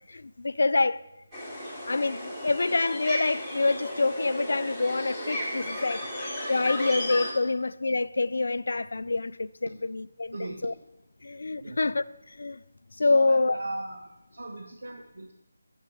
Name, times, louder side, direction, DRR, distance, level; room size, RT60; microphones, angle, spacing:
voice 1, 0.1-1.0 1.9-6.0 6.5-10.7 11.2-12.6 13.0-13.6, left 3 dB, 65° left, 0.4 m, -26 dB
sound 1, 1.3-7.3, left 1 dB, 5° right, 2.8 m, -34 dB
voice 2, 10.3-10.7 11.6-11.9 13.0-14.0 14.3-15.3, right 2 dB, 70° right, 1.0 m, -38 dB
7.3 x 6.6 x 7.7 m
figure-of-eight pair, 160°, 0 cm